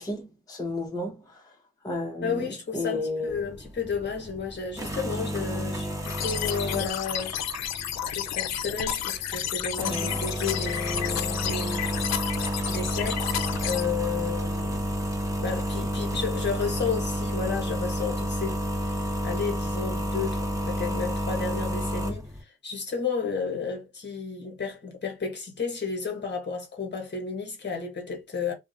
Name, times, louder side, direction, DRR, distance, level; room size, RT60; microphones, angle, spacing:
voice 1, 0.0-1.4 1.8-2.5 2.7-3.4 9.9-10.2 14.1-14.3, left 2 dB, 10° left, 0.6 m, -33 dB
voice 2, 2.2-7.4 8.0-12.1 12.7-14.9 15.4-18.9 19.2-28.5, left 5 dB, 35° left, 1.1 m, -32 dB
sound 1, 3.3-22.4, equal, 10° right, 1.0 m, -31 dB
sound 2, 6.0-13.8, left 11 dB, 60° left, 0.4 m, -31 dB
2.3 x 2.1 x 2.6 m
cardioid pair, 90°, 30 cm